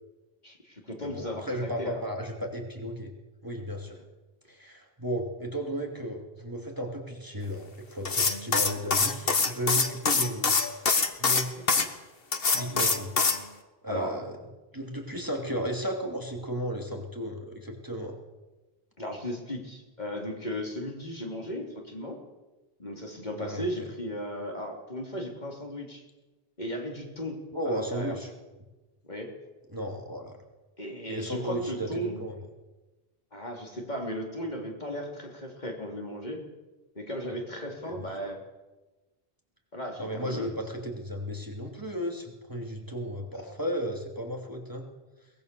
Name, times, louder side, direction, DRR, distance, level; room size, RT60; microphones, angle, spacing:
voice 1, 0.4-2.0 11.5-11.9 13.9-14.2 19.0-22.2 22.8-26.0 26.6-28.2 29.0-29.4 30.8-32.2 33.3-36.4 37.0-38.4 39.7-40.5 43.3-43.5, equal, 45° left, 1 dB, 3.5 m, -36 dB
voice 2, 1.0-3.1 3.4-4.0 4.5-10.5 10.8-11.5 12.5-13.2 13.8-14.4 14.7-18.2 23.4-23.9 27.5-28.3 29.7-30.4 31.1-32.4 37.8-38.3 40.0-44.8, equal, 20° right, 1 dB, 2.7 m, -34 dB
sound 1, 8.0-11.9 12.3-13.4, left 4 dB, 65° left, 1.7 m, -24 dB
22.5 x 19.5 x 6.9 m, 1.1 s
omnidirectional pair, 1.1 m